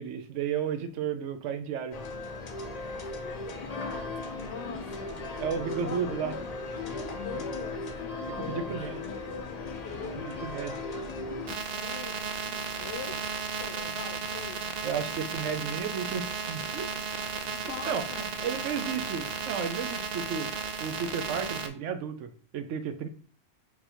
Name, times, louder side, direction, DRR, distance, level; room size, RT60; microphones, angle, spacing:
voice 1, 0.0-2.0 5.4-6.4 8.4-9.0 10.2-10.9 14.8-16.9 17.9-18.0 18.4-20.5 20.8-23.1, right 7 dB, 90° right, 9 dB, 1.0 m, -33 dB
sound 1, 1.9-11.6, left 3 dB, 45° left, 0.6 m, -37 dB
voice 2, 2.8-3.4 3.7-4.1 4.4-5.4 5.7-6.5 6.8-8.8 9.1-10.4 11.7-14.7 17.6-19.1, left 6 dB, 70° left, 6 dB, 1.0 m, -43 dB
sound 2, 11.5-21.7, right 5 dB, 50° right, 0.5 m, -34 dB
4.2 x 2.6 x 4.4 m, 0.42 s
omnidirectional pair, 1.2 m